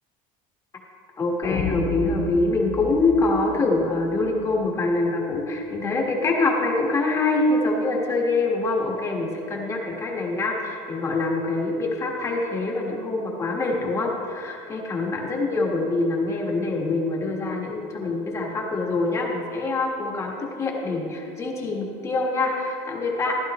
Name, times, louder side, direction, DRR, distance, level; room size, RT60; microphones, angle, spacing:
voice 1, 1.2-23.4, left 3 dB, 20° left, -1 dB, 1.5 m, -25 dB
sound 1, 1.4-4.5, left 2 dB, 85° left, 2.8 m, -31 dB
15.0 x 11.5 x 3.1 m, 2.7 s
cardioid pair, 165°, 14 cm